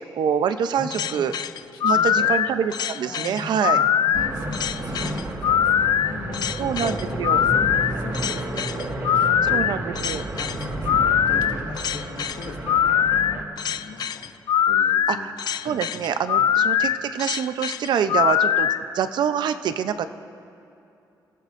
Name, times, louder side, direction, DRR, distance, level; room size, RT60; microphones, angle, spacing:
voice 1, 0.1-1.3 1.8-3.8 6.6-7.4 9.5-10.2 15.1-15.3 15.6-18.7 18.9-20.1, right 8 dB, 80° right, 11 dB, 0.6 m, -25 dB
voice 2, 0.8-1.3 1.7-2.3 3.0-9.7 10.3-14.3 14.6-15.3 15.6-15.8 16.3-16.7, left 4 dB, 85° left, -1 dB, 2.1 m, -39 dB
sound 1, 0.9-18.8, left 9 dB, 65° left, 0.4 m, -22 dB
sound 2, 4.1-13.4, right 1 dB, 40° right, 1.7 m, -31 dB
28.5 x 16.0 x 2.6 m, 2.7 s
wide cardioid pair, 135°, 7 cm